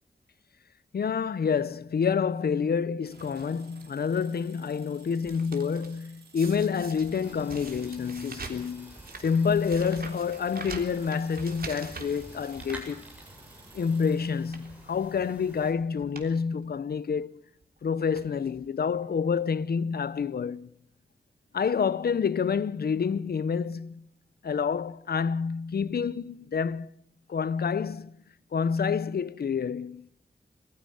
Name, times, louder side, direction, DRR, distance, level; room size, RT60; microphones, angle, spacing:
voice 1, 0.9-13.0 13.7-17.4 17.8-20.7 21.5-24.1 24.4-26.9 27.3-28.2 28.5-30.1, left 6 dB, 70° left, 0.7 m, -28 dB
sound 1, 3.0-14.3, right 5 dB, 80° right, 3.8 m, -56 dB
sound 2, 3.4-3.8 4.4-4.7 5.0-6.0 6.4-13.5 13.8-14.0 14.4-14.8 15.6-15.7 16.0-16.3 16.6-16.7 17.6-17.8 18.1-18.6 19.4-19.5 19.7-19.8, right 4 dB, 65° right, 3.4 m, -44 dB
sound 3, 7.2-15.7, equal, 10° right, 7.9 m, -50 dB
22.5 x 15.0 x 7.8 m
wide cardioid pair, 100°, 17 cm